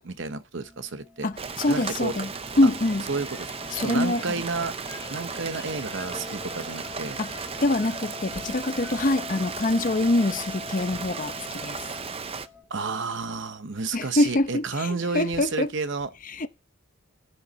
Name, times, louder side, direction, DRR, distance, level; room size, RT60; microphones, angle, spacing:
voice 1, 0.0-1.3 1.7-2.1 3.1-3.5 3.8-4.7 5.1-7.2 12.7-16.1, right 4 dB, 55° right, 0.8 m, -31 dB
sound 1, 0.6-12.6, left 6 dB, 10° right, 4.6 m, -45 dB
voice 2, 1.2-2.3 2.6-3.1 3.7-4.4 7.2-7.3 7.6-11.8 13.9-15.7 16.2-16.5, left 2 dB, 35° left, 0.7 m, -25 dB
Rain, 1.4-12.5, right 5 dB, 25° right, 0.5 m, -36 dB
sound 2, 2.1-10.1, left 3 dB, 20° left, 1.5 m, -47 dB
15.5 x 8.6 x 4.1 m
head